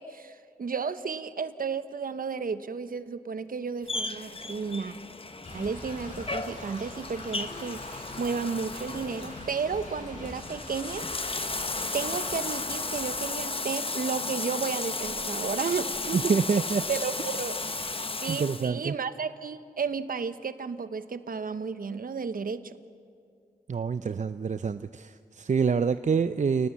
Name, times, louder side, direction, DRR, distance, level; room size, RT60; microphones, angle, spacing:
voice 1, 0.0-4.9 5.5-11.1 11.3-16.4 16.9-17.9 18.2-22.8, right 5 dB, 65° right, 12 dB, 1.1 m, -33 dB
Bathtub (filling or washing), 3.9-18.7, left 3 dB, 35° left, 1.1 m, -34 dB
Thunder / Rain, 5.4-13.3, left 1 dB, 55° left, 7.9 m, -44 dB
voice 2, 16.1-16.8 18.3-18.9 23.7-26.7, right 5 dB, 50° right, 12 dB, 0.6 m, -26 dB
29.5 x 19.0 x 7.3 m, 2.3 s
cardioid pair, 55°, 16 cm